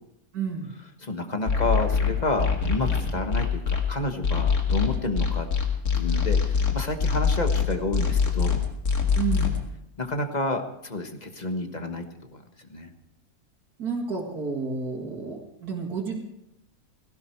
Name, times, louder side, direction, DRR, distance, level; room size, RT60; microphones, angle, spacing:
voice 1, 0.3-0.7 9.1-9.6 13.8-16.2, right 5 dB, 85° right, 0 dB, 2.4 m, -30 dB
voice 2, 1.0-5.5 6.0-8.6 10.0-12.0 12.3-12.4 12.7-12.9, left 2 dB, 30° left, 6 dB, 1.4 m, -30 dB
sound 1, 1.5-3.8 4.2-9.6, left 5 dB, 80° left, 2.5 m, -23 dB
18.5 x 17.0 x 4.6 m, 0.83 s
omnidirectional pair, 1.6 m